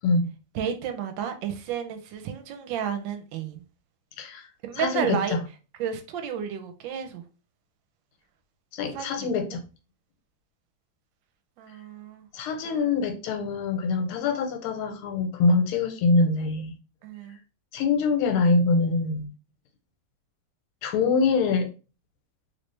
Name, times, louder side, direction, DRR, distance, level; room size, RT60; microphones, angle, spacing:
voice 1, 0.5-3.6 4.6-5.3 5.8-7.2 8.9-9.3 11.6-12.3 12.6-12.9 17.0-17.4, right 8 dB, 70° right, 1.2 m, -32 dB
voice 2, 4.2-4.5 4.7-5.4 8.7-9.6 12.3-16.7 17.7-19.3 20.8-21.7, left 4 dB, 80° left, 1.6 m, -24 dB
3.2 x 3.0 x 3.1 m
omnidirectional pair, 2.4 m